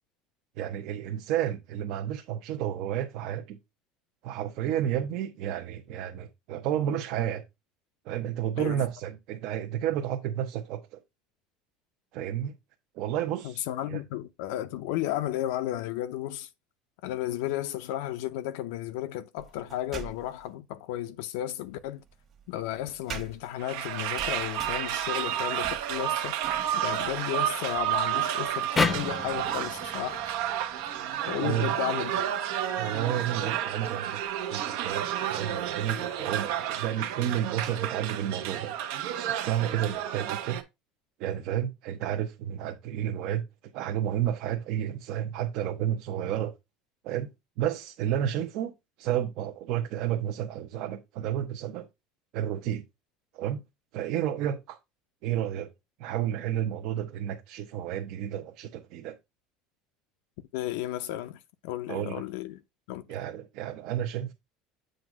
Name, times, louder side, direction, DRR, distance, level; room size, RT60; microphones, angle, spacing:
voice 1, 0.6-3.6 4.2-7.4 8.0-11.0 12.1-12.5 12.9-14.0 31.3-31.7 32.8-34.2 34.5-38.8 39.1-40.6 41.2-43.4 43.7-46.5 47.0-47.3 47.6-48.7 49.0-51.9 52.3-52.8 53.3-53.6 53.9-54.8 55.2-55.7 56.0-59.2 61.9-62.2 63.1-64.3, right 10 dB, 60° right, 0.8 m, -31 dB
voice 2, 13.4-16.5 17.0-22.0 22.5-26.3 26.7-30.2 31.3-32.4 60.5-62.6 62.9-63.0, left 13 dB, 80° left, 0.5 m, -33 dB
sound 1, 19.4-20.5 21.7-30.3, right 6 dB, 30° right, 1.3 m, -47 dB
sound 2, 23.6-40.6, right 11 dB, 80° right, 1.0 m, -31 dB
sound 3, 28.8-32.0, left 4 dB, 15° left, 0.6 m, -32 dB
7.7 x 2.6 x 5.9 m
cardioid pair, 145°, 0 cm